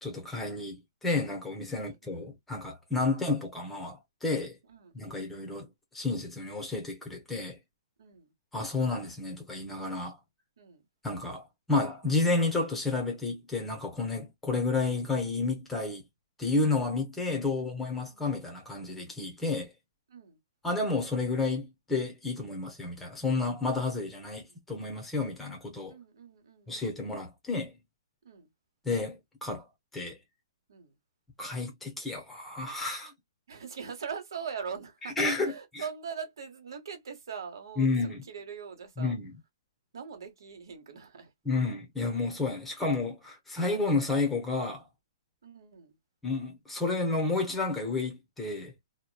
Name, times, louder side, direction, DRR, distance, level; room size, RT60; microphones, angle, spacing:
voice 1, 0.0-4.6 4.9-5.7 5.9-7.6 8.5-10.2 11.0-16.0 16.4-19.7 20.6-25.9 26.7-27.8 28.8-29.6 29.9-30.2 31.4-33.1 35.0-35.8 37.8-38.2 39.0-39.3 41.4-44.9 46.2-48.7, left 3 dB, 5° left, 0.8 m, -31 dB
voice 2, 1.7-2.3 3.0-3.2 4.7-5.3 8.0-8.3 10.6-10.8 17.2-18.2 20.1-20.4 24.2-24.6 25.9-27.0 28.2-28.5 30.7-30.9 33.5-39.2 39.9-41.3 45.4-46.0, right 6 dB, 70° right, 1.3 m, -43 dB
2.9 x 2.2 x 2.2 m
hypercardioid pair, 160°, 2 cm